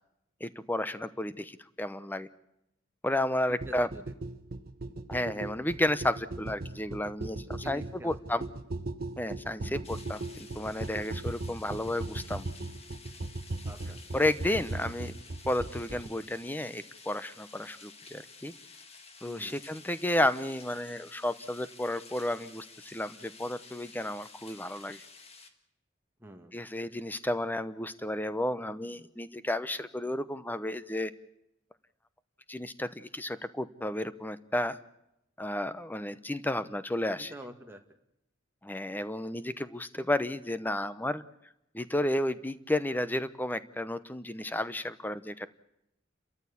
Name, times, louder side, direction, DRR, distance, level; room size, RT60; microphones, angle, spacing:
voice 1, 0.4-2.3 3.0-3.9 5.1-8.4 9.2-12.5 14.1-15.1 15.5-18.5 19.2-25.0 26.5-31.1 32.5-34.8 35.4-37.3 38.6-41.2 41.7-45.5, left 1 dB, 10° left, 13 dB, 0.8 m, -32 dB
voice 2, 3.5-4.0 7.6-8.2 9.6-9.9 13.6-14.0 19.2-19.6 26.2-26.5 37.2-37.8, right 1 dB, 10° right, 3 dB, 2.0 m, -47 dB
sound 1, 3.6-16.1, right 2 dB, 50° right, 1.1 m, -38 dB
sound 2, 9.8-25.5, left 4 dB, 35° left, 1.8 m, -52 dB
29.5 x 14.0 x 8.6 m, 0.84 s
head